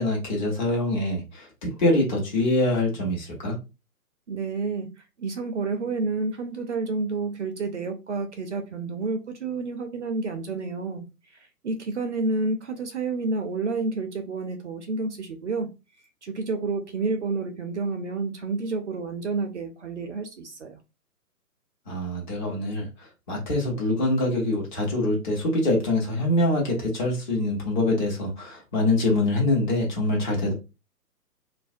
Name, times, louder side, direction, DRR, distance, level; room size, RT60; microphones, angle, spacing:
voice 1, 0.0-3.6 21.9-22.9 23.3-30.5, left 1 dB, 30° left, 1.0 m, -24 dB
voice 2, 4.3-11.0 11.3-15.7 16.2-20.8, right 3 dB, 50° right, 0.5 m, -30 dB
2.5 x 2.1 x 2.5 m
figure-of-eight pair, 135°, 46 cm